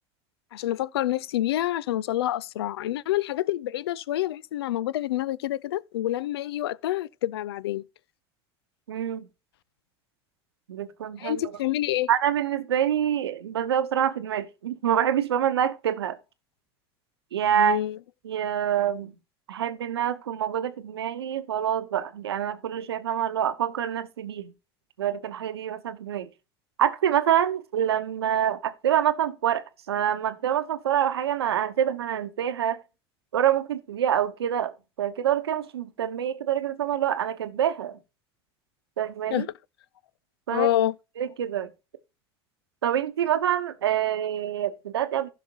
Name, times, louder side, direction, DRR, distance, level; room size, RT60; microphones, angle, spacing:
voice 1, 0.5-7.8 11.2-12.1 17.5-18.0 39.3-39.5 40.5-41.0, left 13 dB, 85° left, 0.4 m, -27 dB
voice 2, 8.9-9.3 10.7-11.4 12.1-16.2 17.3-17.8 18.2-19.1 19.5-24.5 25.0-26.3 26.8-32.8 33.3-38.0 39.0-39.5 40.5-40.7 41.2-41.7 42.8-45.3, right 10 dB, 90° right, 0.9 m, -26 dB
15.5 x 5.7 x 2.8 m
hypercardioid pair, 80°, 13 cm